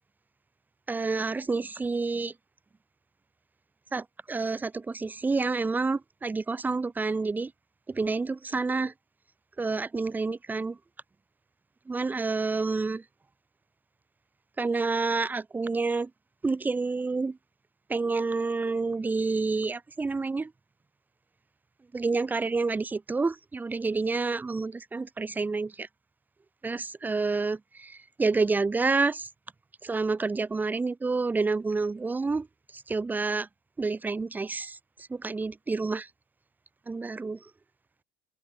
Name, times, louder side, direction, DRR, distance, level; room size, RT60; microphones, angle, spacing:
voice 1, 0.9-2.3 3.9-7.5 7.9-8.9 9.6-10.8 11.9-13.0 14.6-16.1 16.4-17.4 17.9-20.5 21.9-25.9 26.6-29.3 29.8-32.5 32.7-33.5 33.8-34.8 35.1-36.1 36.9-37.4, right 3 dB, 15° right, 0.7 m, -29 dB
hypercardioid pair, 70°, 11 cm